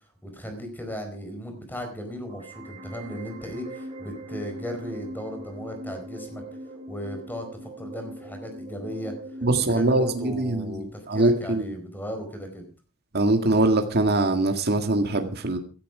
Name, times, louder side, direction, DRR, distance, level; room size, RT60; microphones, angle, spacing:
voice 1, 0.2-6.4 6.9-9.1 9.5-12.7, equal, 10° left, 5 dB, 4.6 m, -36 dB
sound 1, 2.3-10.3, right 1 dB, 25° right, 5.1 m, -40 dB
voice 2, 9.4-11.7 13.1-15.6, right 2 dB, 50° right, 5 dB, 1.9 m, -23 dB
16.0 x 12.5 x 4.9 m, 0.36 s
head